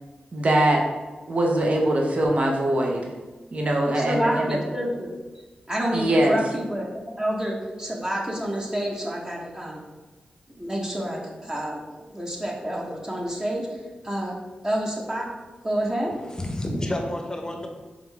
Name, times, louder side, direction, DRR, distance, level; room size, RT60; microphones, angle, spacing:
voice 1, 0.3-0.8 1.3-3.1 3.5-4.6 5.9-6.4, right 1 dB, 50° right, 0 dB, 0.7 m, -22 dB
voice 2, 4.0-5.1 5.7-9.8 10.6-13.7 14.0-14.3 14.6-15.3 15.6-16.1, right 1 dB, 20° right, -2 dB, 1.0 m, -28 dB
voice 3, 16.2-17.7, left 1 dB, 25° left, 3 dB, 0.7 m, -29 dB
3.8 x 3.5 x 3.4 m, 1.2 s
cardioid pair, 65°, 3 cm